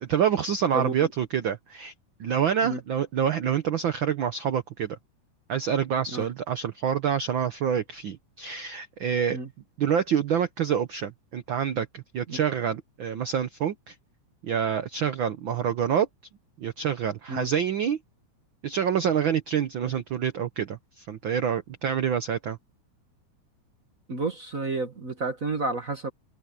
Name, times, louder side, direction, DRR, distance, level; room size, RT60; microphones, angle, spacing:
voice 1, 0.0-1.9 2.2-5.0 5.5-9.4 9.8-13.9 14.4-16.1 16.6-18.0 18.6-22.6, right 8 dB, 85° right, 1.0 m, -27 dB
voice 2, 0.7-1.1 2.6-2.8 6.1-6.3 9.3-9.5 12.3-12.4 17.3-17.5 19.8-20.0 24.1-26.1, right 3 dB, 40° right, 1.2 m, -31 dB
omnidirectional pair, 3.5 m